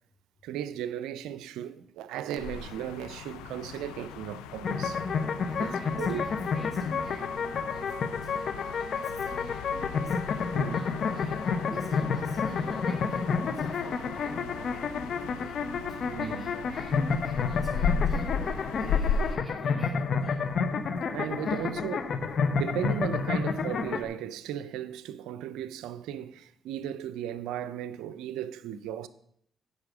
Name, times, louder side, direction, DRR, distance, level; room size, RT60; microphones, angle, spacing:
voice 1, 0.4-5.0 5.6-6.2 10.5-10.8 16.1-16.5 21.1-22.1 22.6-29.1, right 10 dB, 85° right, 0.4 m, -36 dB
sound 1, 2.4-19.4, left 6 dB, 90° left, 0.4 m, -36 dB
sound 2, 4.6-24.0, left 5 dB, 60° left, 0.8 m, -30 dB
voice 2, 5.4-20.5 21.4-21.8, equal, 5° right, 2.4 m, -46 dB
8.2 x 5.5 x 6.1 m
supercardioid pair, 55°, 0 cm